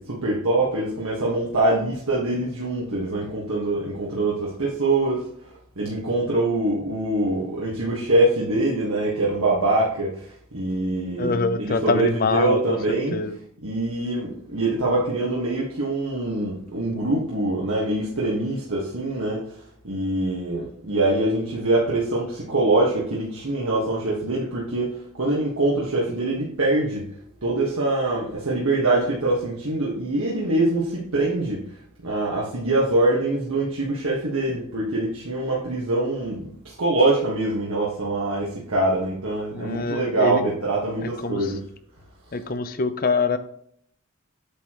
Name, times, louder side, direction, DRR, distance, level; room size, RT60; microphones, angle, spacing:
voice 1, 0.0-5.3 5.7-13.2 13.6-19.4 19.8-27.1 27.4-31.6 32.0-41.6, right 2 dB, 85° right, -5 dB, 1.6 m, -24 dB
voice 2, 11.2-13.4 39.5-40.5 41.0-41.6 42.3-43.4, left 4 dB, 40° left, 11 dB, 0.6 m, -25 dB
8.2 x 6.7 x 3.0 m, 0.67 s
head